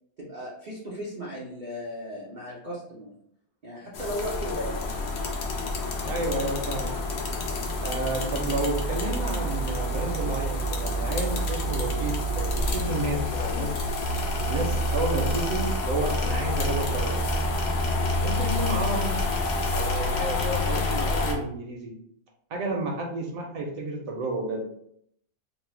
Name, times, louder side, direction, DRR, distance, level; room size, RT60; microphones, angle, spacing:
voice 1, 0.2-3.1 3.6-4.8, equal, 90° right, -6 dB, 0.4 m, -36 dB
sound 1, 3.9-21.3, left 1 dB, 75° left, 0.6 m, -28 dB
voice 2, 6.0-7.0 7.8-13.8 14.5-17.2 18.2-19.2 19.7-21.9 22.5-24.7, right 2 dB, 70° right, 0 dB, 0.9 m, -31 dB
3.2 x 2.0 x 3.1 m, 0.70 s
omnidirectional pair, 1.7 m